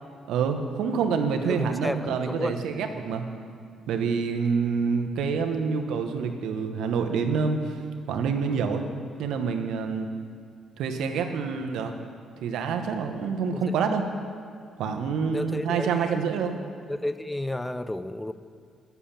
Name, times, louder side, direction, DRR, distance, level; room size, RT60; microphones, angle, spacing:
voice 1, 0.3-3.3 3.9-7.7 8.1-8.8 9.2-10.1 10.8-11.9 12.4-14.0 14.8-16.6, right 5 dB, 85° right, 5 dB, 1.0 m, -27 dB
voice 2, 1.5-2.6 13.5-13.7 15.3-16.2 16.9-18.3, left 1 dB, 10° left, 12 dB, 0.4 m, -32 dB
11.0 x 7.0 x 7.3 m, 2.2 s
cardioid pair, 90°, 0 cm